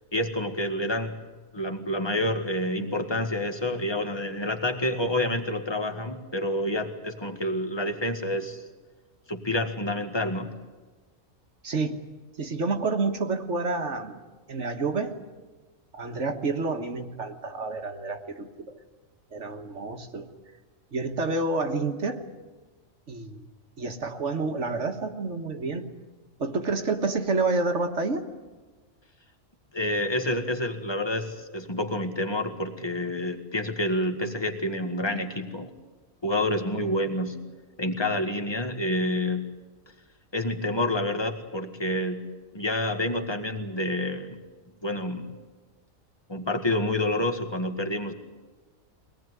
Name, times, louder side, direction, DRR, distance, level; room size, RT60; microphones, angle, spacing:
voice 1, 0.1-1.2 1.5-8.6 9.3-10.5 29.7-35.7 36.2-37.4 37.8-39.5 40.3-44.4 44.8-45.3 46.3-48.1, left 1 dB, 20° left, 6 dB, 1.8 m, -28 dB
voice 2, 11.6-12.0 12.4-14.2 14.5-15.2 15.9-18.8 19.3-20.3 20.9-22.2 23.1-23.5 23.8-25.8 26.4-28.3, right 3 dB, 60° right, 5 dB, 1.7 m, -29 dB
23.5 x 18.5 x 9.6 m, 1.3 s
omnidirectional pair, 1.4 m